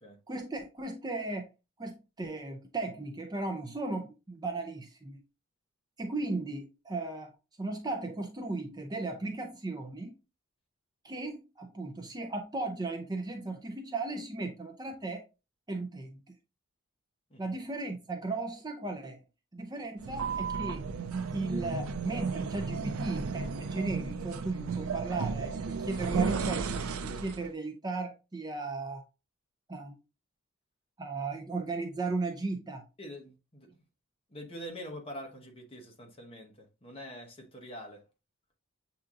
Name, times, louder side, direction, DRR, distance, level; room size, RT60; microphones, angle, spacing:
voice 1, 0.3-1.5 1.8-5.2 6.0-10.2 11.0-15.2 15.7-16.3 17.4-19.2 19.5-20.9 21.3-29.0 29.7-30.0 31.0-32.9, right 3 dB, 20° right, 0.5 m, -36 dB
sound 1, 20.0-27.5, right 5 dB, 90° right, 0.4 m, -34 dB
voice 2, 33.0-33.8 34.3-38.0, equal, 25° left, 1.0 m, -45 dB
7.6 x 2.8 x 2.4 m
head